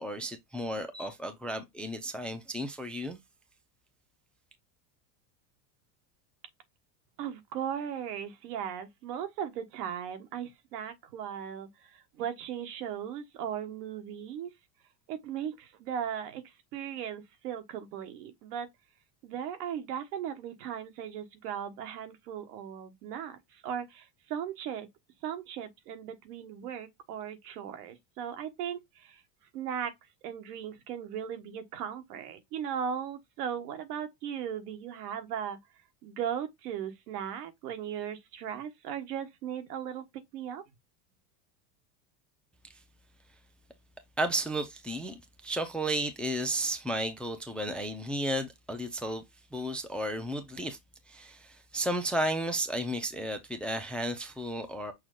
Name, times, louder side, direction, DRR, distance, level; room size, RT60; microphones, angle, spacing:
voice 1, 0.0-3.2 44.2-49.2 49.5-50.8 51.1-54.9, right 1 dB, ahead, 0.4 m, -33 dB
voice 2, 7.2-14.5 15.1-18.7 19.2-24.9 25.2-29.2 29.5-29.9 30.2-35.6 36.0-40.0 40.3-40.6, right 8 dB, 85° right, 1.5 m, -37 dB
6.3 x 2.3 x 3.7 m
supercardioid pair, 130°, 46 cm